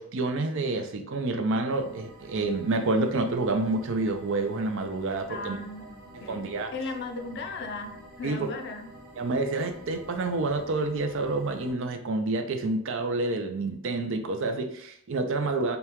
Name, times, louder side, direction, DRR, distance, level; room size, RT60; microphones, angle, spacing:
voice 1, 0.0-5.6 6.3-6.7 8.2-8.5 9.2-15.8, right 2 dB, 60° right, 6 dB, 0.5 m, -28 dB
sound 1, 1.7-11.7, right 1 dB, 40° right, 1.3 m, -49 dB
voice 2, 5.3-8.9, left 3 dB, 50° left, 5 dB, 0.5 m, -37 dB
5.3 x 2.3 x 2.9 m, 0.71 s
head